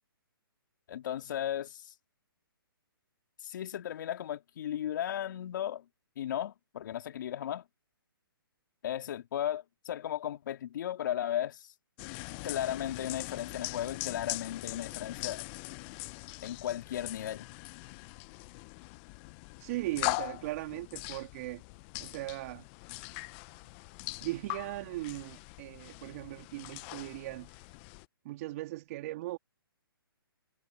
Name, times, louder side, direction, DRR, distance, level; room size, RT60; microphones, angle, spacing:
voice 1, 0.9-1.9 3.4-5.8 6.2-7.6 8.8-11.7 12.4-15.5 16.4-17.5, left 11 dB, 55° left, 2.6 m, -35 dB
sound 1, 12.0-28.1, left 26 dB, 30° left, 0.9 m, -41 dB
voice 2, 19.6-21.6 22.0-22.7 24.2-27.5 28.2-29.4, right 18 dB, 40° right, 2.5 m, -38 dB
hypercardioid pair, 145°, 12 cm